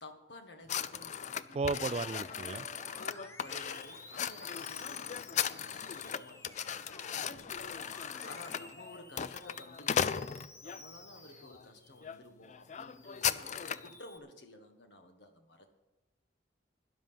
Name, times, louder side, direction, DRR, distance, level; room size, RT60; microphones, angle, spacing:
voice 1, 0.0-1.9 2.9-13.5 13.8-15.7, left 2 dB, 65° left, 6 dB, 1.5 m, -53 dB
sound 1, 0.7-10.8 11.4-11.6 12.0-12.2 12.4-13.9, left 8 dB, 40° left, 0.4 m, -37 dB
voice 2, 1.5-2.7, right 4 dB, 35° right, 15 dB, 0.3 m, -34 dB
Musical instrument, 1.7-12.2 12.6-14.2, left 1 dB, 15° left, 1.0 m, -55 dB
12.5 x 10.5 x 5.7 m, 1.0 s
head